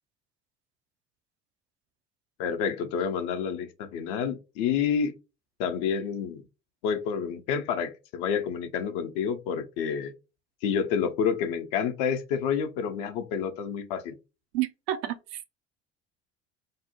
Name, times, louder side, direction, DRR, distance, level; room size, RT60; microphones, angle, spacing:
voice 1, 2.4-5.1 5.6-6.4 6.8-10.1 10.6-14.2, left 7 dB, 50° left, 0.6 m, -29 dB
voice 2, 14.5-15.4, right 13 dB, 55° right, 0.5 m, -30 dB
2.7 x 2.0 x 2.7 m
figure-of-eight pair, 65°, 36 cm